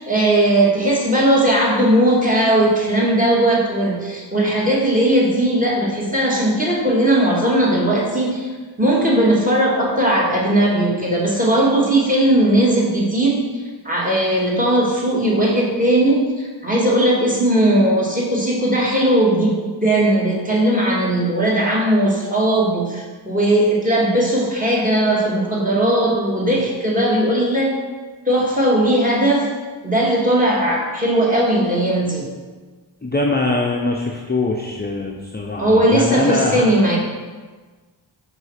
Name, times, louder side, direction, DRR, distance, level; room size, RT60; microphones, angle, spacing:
voice 1, 0.0-8.5 8.8-13.4 13.8-27.7 28.3-29.4 29.8-32.2 35.6-37.0, right 1 dB, 15° right, -4 dB, 2.3 m, -18 dB
voice 2, 33.0-36.7, left 2 dB, 20° left, 0 dB, 0.7 m, -22 dB
5.4 x 5.4 x 4.9 m, 1.4 s
cardioid pair, 60°, 46 cm